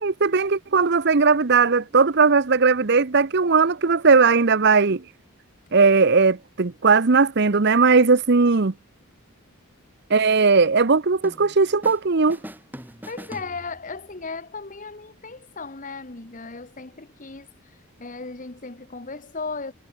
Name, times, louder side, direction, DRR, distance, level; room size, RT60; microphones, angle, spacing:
voice 1, 0.0-5.0 5.7-8.7 10.1-12.4, right 4 dB, 50° right, 0.8 m, -18 dB
sound 1, 11.2-12.0 12.3-14.1, equal, 10° right, 3.0 m, -41 dB
voice 2, 13.1-19.7, left 4 dB, 35° left, 1.3 m, -36 dB
head